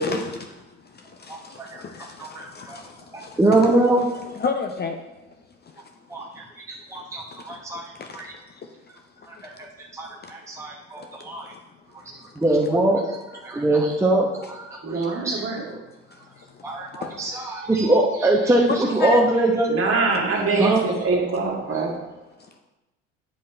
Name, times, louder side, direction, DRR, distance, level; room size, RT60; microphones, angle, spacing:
voice 1, 0.0-5.0 5.7-5.8 6.9-7.0 7.3-8.6 9.2-9.5 10.2-10.3 11.0-11.6 16.5-17.3 18.8-19.2 20.1-20.2 20.8-21.0, left 5 dB, 25° left, 0.7 m, -34 dB
voice 2, 1.3-1.8 2.2-2.8 3.4-4.1 6.1-6.2 6.9-7.8 8.1-8.3 9.9-11.5 12.4-15.5 16.6-19.7 20.5-20.8 21.7-21.8, right 2 dB, 10° right, 1.0 m, -22 dB
voice 3, 14.8-15.6 19.7-22.0, right 4 dB, 35° right, 2.1 m, -24 dB
8.8 x 5.3 x 4.3 m
figure-of-eight pair, 65°, 38 cm